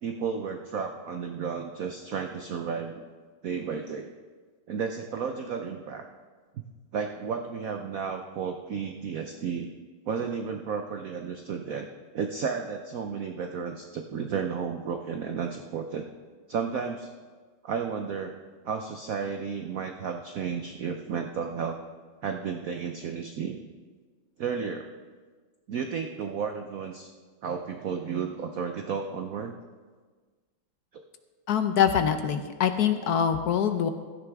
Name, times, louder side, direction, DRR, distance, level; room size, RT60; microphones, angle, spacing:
voice 1, 0.0-3.0 3.4-4.1 4.7-6.0 6.9-9.7 10.1-11.9 12.1-16.1 16.5-17.1 17.6-18.4 18.6-21.8 22.2-23.6 24.4-24.9 25.7-27.1 27.4-29.5 30.9-31.0, right 6 dB, 75° right, 5 dB, 0.7 m, -33 dB
voice 2, 31.5-33.9, left 8 dB, 70° left, 8 dB, 0.9 m, -24 dB
16.0 x 13.0 x 3.5 m, 1.5 s
omnidirectional pair, 2.3 m